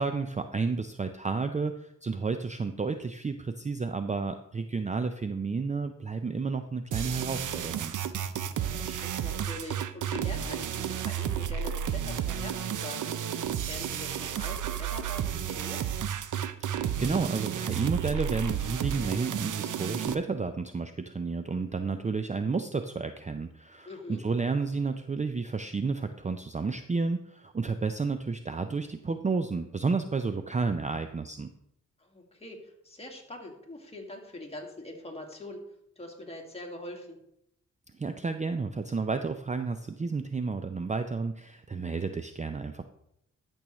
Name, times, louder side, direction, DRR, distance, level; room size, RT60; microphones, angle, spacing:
voice 1, 0.0-7.9 16.6-16.7 17.0-31.5 37.9-42.8, right 4 dB, 25° right, 8 dB, 0.5 m, -31 dB
sound 1, 6.9-20.1, right 9 dB, 75° right, 0.6 m, -32 dB
voice 2, 8.6-15.8 23.8-24.2 32.0-35.6 36.0-37.2, left 1 dB, 20° left, 0 dB, 2.0 m, -43 dB
12.5 x 6.2 x 3.1 m, 0.77 s
cardioid pair, 80°, 31 cm